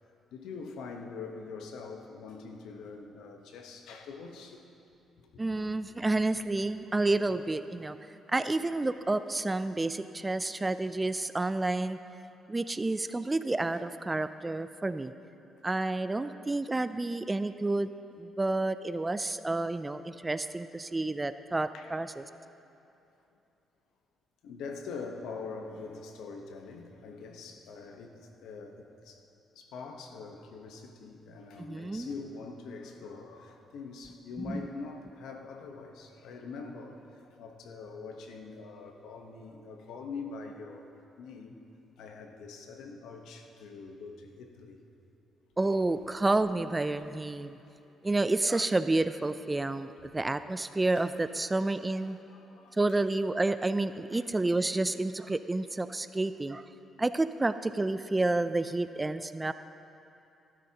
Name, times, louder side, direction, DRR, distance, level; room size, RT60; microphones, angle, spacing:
voice 1, 0.3-4.6 5.2-5.3 21.7-22.0 24.4-28.1 28.4-29.2 29.5-40.9 41.2-41.6 42.0-44.8 47.6-47.9 50.0-50.1 51.0-51.1 52.0-53.0 54.1-54.3 56.1-56.2, left 4 dB, 85° left, 3 dB, 1.1 m, -44 dB
voice 2, 5.4-8.0 8.3-12.0 12.5-15.1 15.6-17.9 18.2-22.2 31.6-32.1 34.5-34.6 45.6-47.6 48.0-52.2 52.7-56.7 57.0-59.5, right 2 dB, 20° right, 12 dB, 0.4 m, -30 dB
15.5 x 13.0 x 2.9 m, 2.7 s
cardioid pair, 90°, 0 cm